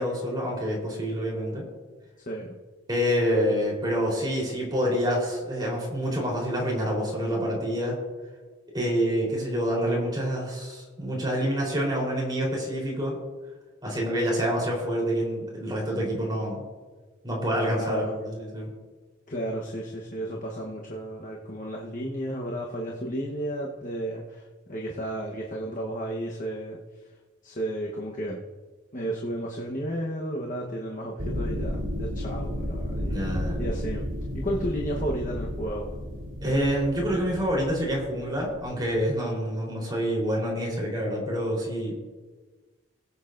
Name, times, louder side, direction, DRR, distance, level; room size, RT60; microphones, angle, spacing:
voice 1, 0.0-1.7 2.9-8.0 8.7-13.2 13.8-16.6 17.2-18.7 33.1-33.6 36.4-41.9, equal, 20° right, -3 dB, 3.8 m, -27 dB
voice 2, 17.7-18.2 19.3-26.8 27.4-28.4 28.9-34.1 34.3-35.9, right 1 dB, 40° left, -1 dB, 1.1 m, -33 dB
sound 1, 31.2-39.0, equal, 80° right, 2.5 m, -33 dB
21.5 x 8.1 x 2.6 m, 1.3 s
head